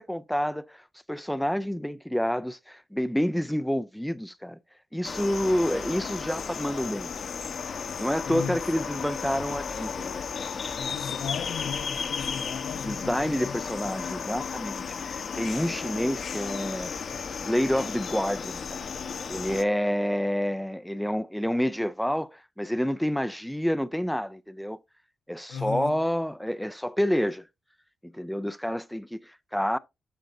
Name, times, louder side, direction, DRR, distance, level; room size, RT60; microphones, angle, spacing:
voice 1, 0.0-4.6 4.9-7.1 8.0-10.3 12.8-16.9 17.4-18.9 19.3-24.8 25.3-27.5 28.0-29.8, equal, ahead, 0.4 m, -28 dB
sound 1, 5.0-19.6, left 6 dB, 60° left, 1.0 m, -34 dB
voice 2, 8.3-8.9 10.7-13.6 25.5-26.0, left 7 dB, 85° left, 0.6 m, -36 dB
12.0 x 5.0 x 2.6 m
cardioid pair, 85°, 0 cm